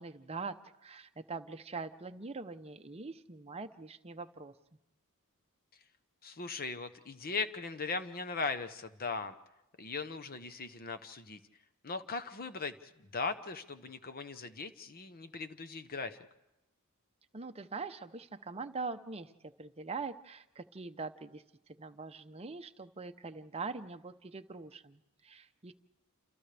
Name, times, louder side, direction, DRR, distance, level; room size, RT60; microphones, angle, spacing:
voice 1, 0.0-4.5 17.3-21.4 21.8-25.7, right 4 dB, 25° right, 8 dB, 0.7 m, -43 dB
voice 2, 6.2-9.4 9.8-11.4 11.8-16.2, left 4 dB, 40° left, 10 dB, 0.9 m, -39 dB
28.5 x 28.5 x 3.4 m, 0.92 s
head